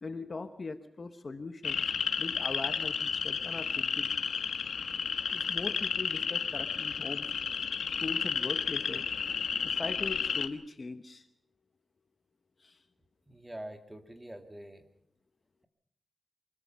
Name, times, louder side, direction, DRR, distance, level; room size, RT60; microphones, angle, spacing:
voice 1, 0.0-1.9 2.2-4.1 5.3-7.3 8.0-9.0 9.6-11.3 12.6-12.8, left 3 dB, 35° left, 9 dB, 1.0 m, -40 dB
sound 1, 1.6-10.5, left 6 dB, 85° left, 1.3 m, -32 dB
voice 2, 13.3-14.8, right 1 dB, 10° right, 6 dB, 2.2 m, -45 dB
24.0 x 22.0 x 5.6 m, 0.68 s
wide cardioid pair, 170°, 0 cm